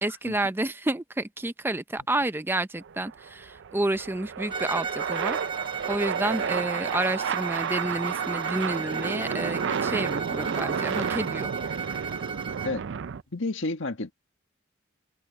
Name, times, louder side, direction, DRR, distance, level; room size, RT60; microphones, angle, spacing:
voice 1, 0.0-5.4 5.9-11.5, right 2 dB, 10° right, 0.5 m, -30 dB
sound 1, 2.8-13.2, right 7 dB, 65° right, 0.4 m, -31 dB
Bowed string instrument, 4.5-12.8, right 5 dB, 30° right, 2.0 m, -35 dB
voice 2, 13.3-14.1, left 3 dB, 70° left, 1.7 m, -30 dB
head